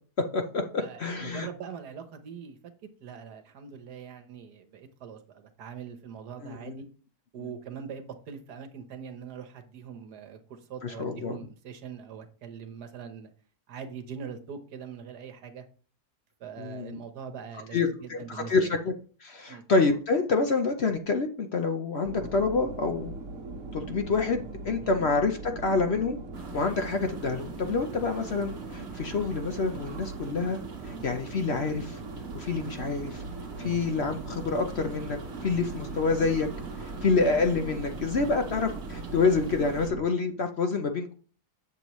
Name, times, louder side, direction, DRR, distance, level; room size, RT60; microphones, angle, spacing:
voice 1, 0.2-1.5 6.4-6.8 7.4-7.5 10.8-11.4 16.6-17.0 17.7-18.9 19.2-23.1 23.7-26.2 26.5-30.6 30.8-32.0 32.3-33.2 33.6-35.2 35.4-36.5 36.8-41.1, left 4 dB, 55° left, 0.8 m, -27 dB
voice 2, 0.8-2.6 3.0-6.8 7.3-13.3 13.7-15.6 16.4-18.7 19.5-19.6 24.8-25.0 27.9-28.0 33.5-33.9 37.2-37.3, right 7 dB, 75° right, 1.6 m, -42 dB
sound 1, 22.0-40.0, right 3 dB, 60° right, 1.5 m, -40 dB
sound 2, 26.3-39.9, right 4 dB, 40° right, 1.4 m, -45 dB
8.3 x 7.1 x 3.1 m
omnidirectional pair, 1.7 m